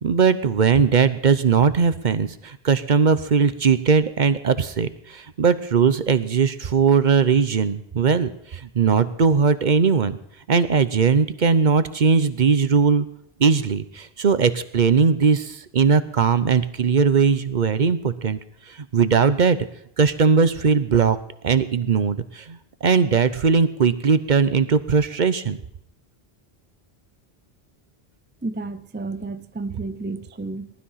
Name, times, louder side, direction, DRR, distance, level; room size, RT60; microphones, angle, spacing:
voice 1, 0.0-10.2 10.5-13.1 13.4-18.4 18.7-19.6 20.0-21.2 21.4-25.6, right 5 dB, 50° right, 13 dB, 0.9 m, -19 dB
voice 2, 28.4-30.7, right 3 dB, 15° right, 11 dB, 0.4 m, -31 dB
18.5 x 12.5 x 5.7 m, 0.76 s
omnidirectional pair, 1.0 m